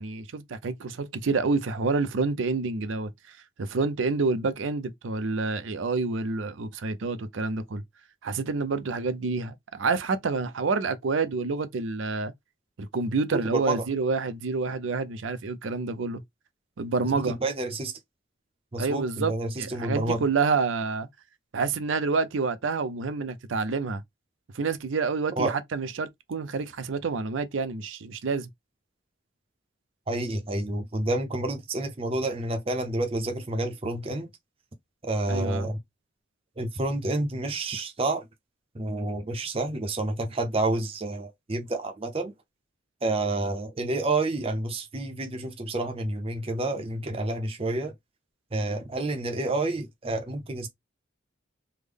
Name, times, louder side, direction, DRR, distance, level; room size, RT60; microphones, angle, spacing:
voice 1, 0.0-7.8 8.2-12.3 12.8-16.2 16.8-17.4 18.8-21.1 21.5-24.0 24.5-28.5 35.3-35.7, right 4 dB, 80° right, 0.5 m, -28 dB
voice 2, 13.3-13.8 17.0-17.9 18.7-20.2 25.4-25.5 30.1-34.3 35.0-35.8 36.6-38.2 38.7-42.3 43.0-47.9 48.5-50.7, right 2 dB, 30° right, 0.6 m, -29 dB
3.5 x 2.1 x 3.3 m
head